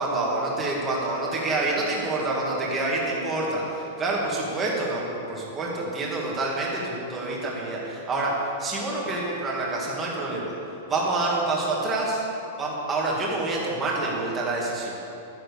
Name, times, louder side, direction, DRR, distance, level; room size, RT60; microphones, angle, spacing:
voice 1, 0.0-8.3 8.6-10.5 10.9-12.2 12.6-15.0, right 2 dB, 15° right, -4 dB, 2.1 m, -27 dB
12.0 x 10.0 x 6.9 m, 2.8 s
supercardioid pair, 175°, 0 cm